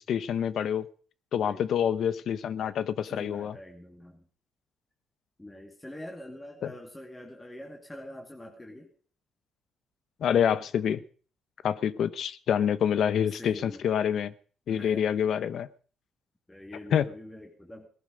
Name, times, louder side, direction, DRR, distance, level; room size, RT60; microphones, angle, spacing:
voice 1, 0.1-0.9 1.3-3.5 6.6-6.7 10.2-11.0 11.6-14.3 14.7-15.7 16.9-17.1, left 8 dB, 65° left, 0.8 m, -27 dB
voice 2, 1.3-1.7 3.1-4.3 5.4-8.9 13.1-13.8 14.7-15.1 16.5-17.9, left 1 dB, 10° left, 2.4 m, -45 dB
18.0 x 12.0 x 5.2 m
cardioid pair, 90°, 0 cm